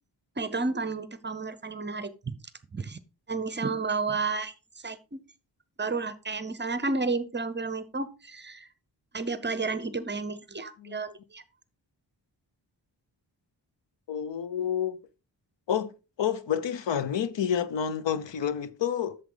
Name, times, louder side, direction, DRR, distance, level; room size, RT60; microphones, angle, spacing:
voice 1, 0.4-2.4 2.7-3.0 3.3-4.5 4.8-5.2 5.8-8.7 9.1-11.4, right 3 dB, 25° right, 0.7 m, -31 dB
voice 2, 14.1-15.0 15.7-15.9 16.2-19.2, left 8 dB, 90° left, 0.8 m, -29 dB
8.3 x 6.9 x 3.8 m
wide cardioid pair, 150°, 42 cm